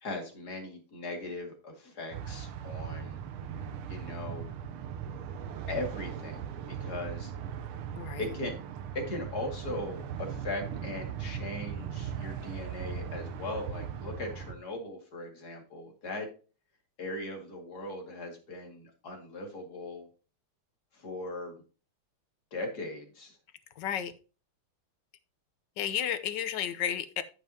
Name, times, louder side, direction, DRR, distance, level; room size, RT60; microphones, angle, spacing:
voice 1, 0.0-3.2 3.9-4.5 5.7-6.4 6.7-7.3 8.2-8.6 8.9-16.3 17.0-20.1 20.9-21.6 22.5-23.4, left 2 dB, 45° left, 2 dB, 2.6 m, -39 dB
sound 1, 2.1-14.5, right 8 dB, 80° right, 1.7 m, -39 dB
voice 2, 23.8-24.1 25.8-27.2, left 9 dB, 65° left, 11 dB, 1.3 m, -32 dB
14.0 x 5.4 x 2.8 m, 0.35 s
omnidirectional pair, 2.4 m